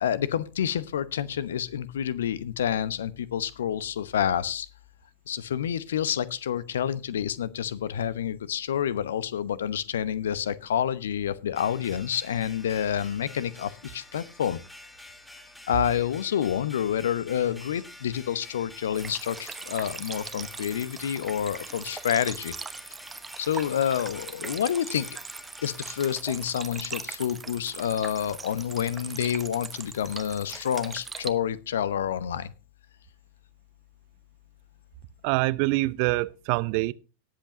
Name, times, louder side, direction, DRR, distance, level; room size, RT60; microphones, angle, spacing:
voice 1, 0.0-4.7 5.3-14.6 15.7-22.5 23.4-25.2 25.6-32.5, left 9 dB, 60° left, 0.8 m, -28 dB
sound 1, 11.5-26.2, left 2 dB, 5° left, 1.3 m, -48 dB
sound 2, 18.9-31.3, right 4 dB, 15° right, 1.0 m, -40 dB
voice 2, 35.2-36.9, right 21 dB, 45° right, 0.5 m, -25 dB
18.5 x 7.9 x 2.8 m
figure-of-eight pair, 90°, 0 cm